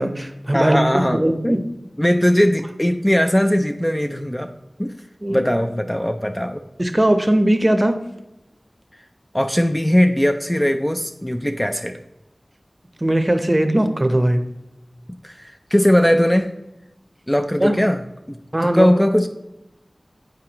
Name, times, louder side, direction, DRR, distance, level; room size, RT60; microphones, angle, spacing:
voice 1, 0.0-1.6 5.2-5.4 6.8-8.0 13.0-14.4 17.6-17.8 18.5-18.9, right 1 dB, 30° right, 8 dB, 0.7 m, -19 dB
voice 2, 0.5-1.6 2.0-4.5 4.8-4.9 5.3-6.6 9.3-12.0 15.2-16.5 17.3-18.4 18.6-19.3, equal, 10° left, 6 dB, 0.4 m, -19 dB
9.2 x 4.6 x 2.9 m, 0.93 s
wide cardioid pair, 50°, 0 cm